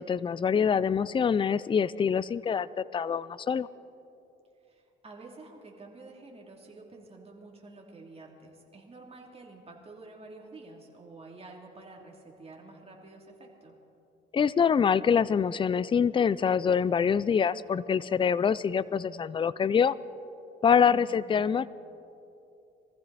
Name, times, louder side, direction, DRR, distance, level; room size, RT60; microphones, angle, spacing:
voice 1, 0.0-3.7 14.3-20.0 20.6-21.7, left 7 dB, 25° left, 19 dB, 0.4 m, -25 dB
voice 2, 4.6-13.7 20.9-21.5, right 3 dB, 30° right, 0 dB, 3.0 m, -49 dB
23.5 x 14.5 x 4.2 m, 2.8 s
cardioid pair, 90°, 20 cm